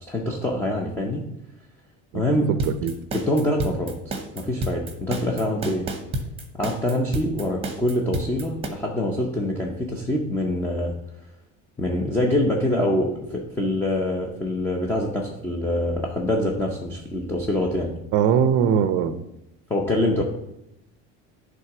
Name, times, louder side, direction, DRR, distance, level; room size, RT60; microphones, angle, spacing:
voice 1, 0.1-1.3 2.1-2.6 3.1-5.9 6.6-10.9 11.8-17.9 19.7-20.2, left 1 dB, 5° left, 0 dB, 0.7 m, -25 dB
sound 1, 2.6-8.7, right 1 dB, 15° right, 0.9 m, -30 dB
voice 2, 18.1-19.2, right 8 dB, 50° right, 11 dB, 0.6 m, -20 dB
10.5 x 3.6 x 5.9 m, 0.85 s
cardioid pair, 170°, 32 cm